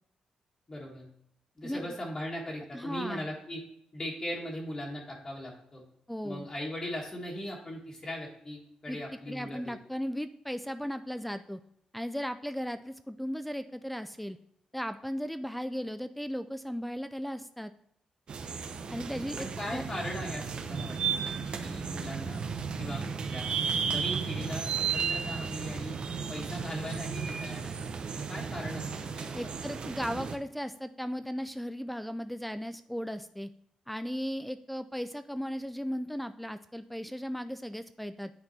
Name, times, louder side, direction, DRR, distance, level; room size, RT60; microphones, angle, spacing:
voice 1, 0.7-1.1 1.6-3.6 3.9-5.8 6.2-9.7 19.4-22.4 22.8-23.5 23.8-26.0 26.3-27.8 28.1-29.5 29.8-30.0, left 1 dB, 30° left, -3 dB, 1.6 m, -39 dB
voice 2, 1.6-1.9 2.7-3.3 6.1-6.5 8.9-9.0 9.3-11.6 11.9-14.4 14.7-17.7 18.9-19.8 29.3-33.5 33.9-38.3, equal, 5° left, 11 dB, 0.3 m, -36 dB
sound 1, 18.3-30.4, right 6 dB, 50° right, 0.7 m, -34 dB
9.5 x 4.3 x 4.2 m, 0.74 s
cardioid pair, 110°, 2 cm